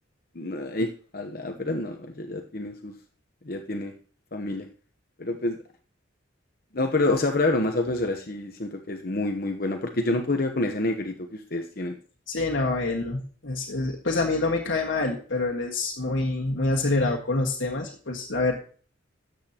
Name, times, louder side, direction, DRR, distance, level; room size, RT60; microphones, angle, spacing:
voice 1, 0.3-2.9 3.4-3.9 4.3-4.7 5.2-5.6 6.7-12.0, left 2 dB, 50° left, 4 dB, 0.9 m, -28 dB
voice 2, 12.3-18.6, left 2 dB, 70° left, -1 dB, 1.6 m, -26 dB
13.5 x 8.1 x 2.9 m, 0.42 s
head